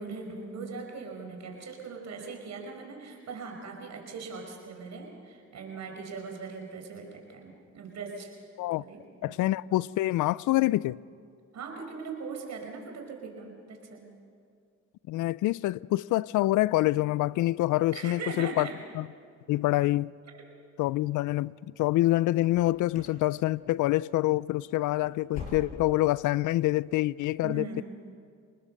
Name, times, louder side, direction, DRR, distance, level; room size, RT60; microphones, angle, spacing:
voice 1, 0.0-8.3 8.8-9.4 11.5-14.1 17.9-18.8 20.3-20.4 27.4-27.8, right 4 dB, 65° right, 5.3 m, -40 dB
voice 2, 9.2-11.0 15.1-18.7 18.9-19.1 19.5-20.1 20.8-27.8, left 17 dB, 80° left, 0.5 m, -26 dB
sound 1, 22.5-23.2 23.5-23.9 24.2-24.4 24.8-26.1 26.4-26.5 27.0-27.1, left 4 dB, 65° left, 5.7 m, -43 dB
28.5 x 19.5 x 6.6 m
cardioid pair, 90°, 30 cm